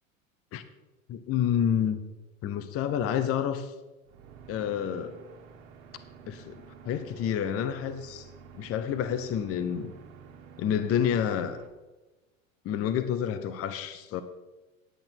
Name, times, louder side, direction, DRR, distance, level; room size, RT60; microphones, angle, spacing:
voice 1, 1.1-2.0 2.4-3.7 4.5-5.2 6.3-6.5 6.8-8.3 8.6-9.9 10.6-11.6 12.6-14.2, left 9 dB, 35° left, 0.9 m, -29 dB
sound 1, 4.1-11.7, right 6 dB, 55° right, 1.7 m, -50 dB
10.5 x 8.7 x 6.0 m
figure-of-eight pair, 80°, 41 cm